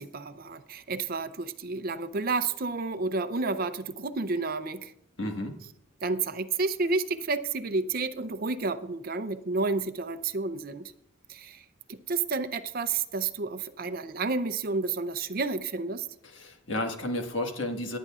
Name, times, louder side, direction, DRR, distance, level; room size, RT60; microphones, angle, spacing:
voice 1, 0.0-4.9 6.0-10.9 11.3-16.1, right 3 dB, 45° right, 11 dB, 0.6 m, -30 dB
voice 2, 5.2-5.6 16.2-18.0, left 1 dB, 60° left, 3 dB, 1.6 m, -32 dB
18.5 x 10.0 x 2.4 m, 0.75 s
head